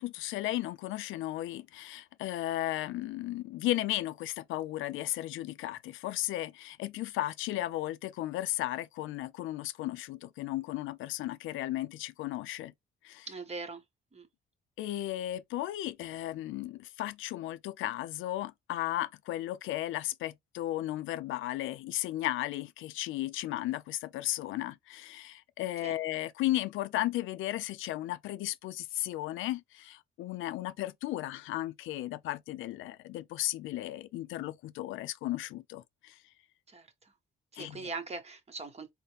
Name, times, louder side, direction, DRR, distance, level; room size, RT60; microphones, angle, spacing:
voice 1, 0.0-12.7 13.0-13.3 14.8-36.2 37.6-37.8, left 15 dB, 85° left, 0.4 m, -35 dB
voice 2, 13.3-13.8 14.1-14.3 25.8-26.0 36.7-37.1 37.5-38.9, right 4 dB, 30° right, 1.2 m, -41 dB
4.0 x 2.1 x 3.3 m
cardioid pair, 90°, 20 cm